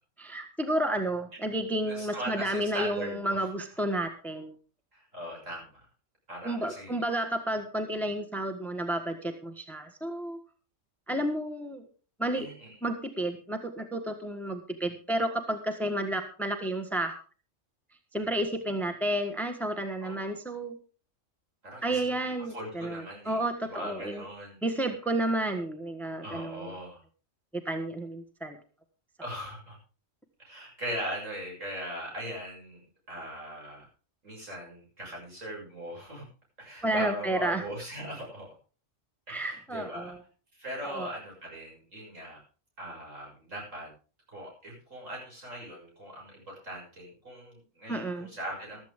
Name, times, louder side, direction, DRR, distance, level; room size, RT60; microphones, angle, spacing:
voice 1, 0.2-4.5 6.4-10.4 11.1-11.8 12.2-12.5 12.8-17.2 18.1-20.8 21.8-24.2 24.6-26.7 27.5-28.6 36.8-37.6 39.3-40.2 40.8-41.1 47.9-48.3, right 1 dB, ahead, 5 dB, 1.4 m, -31 dB
voice 2, 1.9-3.5 4.9-5.8 6.3-7.0 12.3-12.8 20.0-20.3 21.6-22.0 22.4-24.6 26.2-27.0 29.2-29.8 30.4-33.9 34.2-36.2 36.6-38.5 39.3-40.1 40.5-42.4 42.8-43.9 44.3-48.9, equal, 75° right, -1 dB, 7.2 m, -40 dB
15.0 x 13.0 x 3.6 m, 0.37 s
omnidirectional pair, 1.3 m